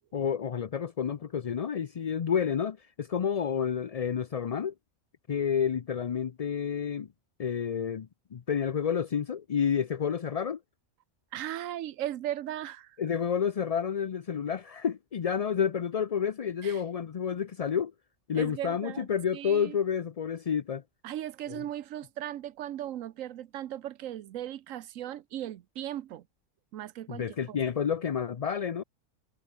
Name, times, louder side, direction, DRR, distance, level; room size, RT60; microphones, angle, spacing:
voice 1, 0.1-4.7 5.3-7.1 7.4-10.6 13.0-17.9 18.3-20.8 21.5-21.6 27.1-28.8, left 7 dB, 50° left, 0.4 m, -30 dB
voice 2, 11.3-13.0 16.6-16.8 18.3-19.1 19.3-19.8 21.0-26.2 26.7-27.6, right 12 dB, 90° right, 1.1 m, -37 dB
omnidirectional pair, 1.3 m